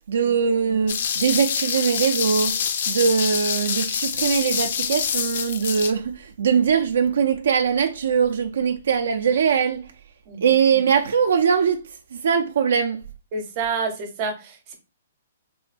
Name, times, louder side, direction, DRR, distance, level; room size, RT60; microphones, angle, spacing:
voice 1, 0.1-2.6 2.9-9.9 10.4-11.8 12.1-13.0, right 6 dB, 75° right, 0.3 m, -21 dB
sound 1, 0.9-5.9, left 7 dB, 50° left, 0.3 m, -26 dB
voice 2, 13.3-14.7, right 4 dB, 30° right, 0.7 m, -29 dB
3.5 x 2.2 x 2.4 m
hypercardioid pair, 165°, 0 cm